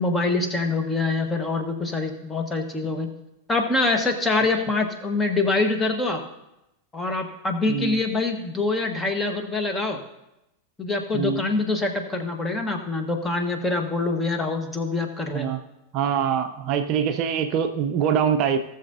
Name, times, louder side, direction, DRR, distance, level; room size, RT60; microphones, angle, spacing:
voice 1, 0.0-3.1 3.5-6.2 6.9-10.0 10.8-15.5, left 3 dB, 15° left, 5 dB, 1.3 m, -25 dB
voice 2, 7.7-8.0 11.1-11.4 15.3-15.6 15.9-18.6, right 8 dB, 40° right, 6 dB, 0.6 m, -24 dB
18.0 x 6.9 x 2.7 m, 0.89 s
figure-of-eight pair, 90°, 0 cm